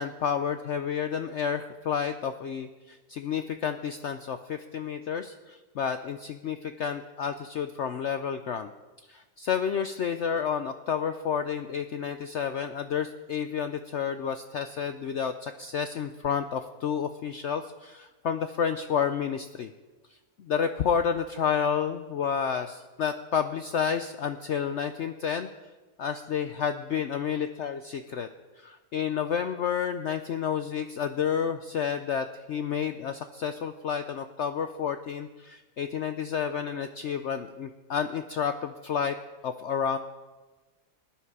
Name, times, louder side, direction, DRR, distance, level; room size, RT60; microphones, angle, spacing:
voice 1, 0.0-8.7 9.1-19.7 20.4-25.5 26.0-28.3 28.6-39.2 39.4-40.0, left 7 dB, 65° left, 9 dB, 0.7 m, -30 dB
19.5 x 10.0 x 4.8 m, 1.2 s
omnidirectional pair, 1.7 m